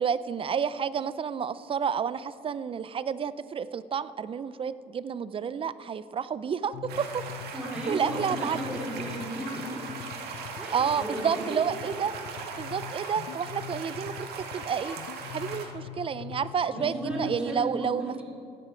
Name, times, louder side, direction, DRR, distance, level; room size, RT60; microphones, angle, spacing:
voice 1, 0.0-7.2 7.9-8.6 10.7-12.1 12.6-14.3 14.5-15.0 15.3-18.1, right 7 dB, 30° right, 16 dB, 0.5 m, -30 dB
sound 1, 6.7-17.4, left 10 dB, 80° left, 0.6 m, -43 dB
sound 2, 6.9-15.6, right 5 dB, 70° right, 1.8 m, -39 dB
voice 2, 7.5-9.8 10.5-11.6 16.7-18.2, right 1 dB, 5° right, -5 dB, 2.7 m, -35 dB
16.0 x 9.7 x 5.1 m, 2.6 s
cardioid pair, 110°, 17 cm